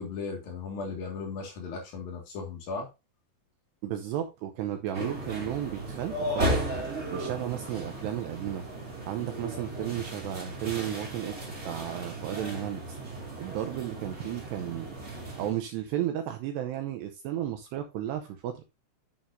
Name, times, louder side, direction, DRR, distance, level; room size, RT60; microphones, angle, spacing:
voice 1, 0.0-2.9, left 4 dB, 60° left, 3.1 m, -36 dB
voice 2, 3.8-6.6 7.1-8.7 9.1-13.0 13.4-15.0 15.4-18.6, right 12 dB, 80° right, 2.5 m, -33 dB
sound 1, 4.9-15.5, right 1 dB, 20° right, 1.7 m, -35 dB
8.5 x 7.3 x 2.6 m
omnidirectional pair, 5.6 m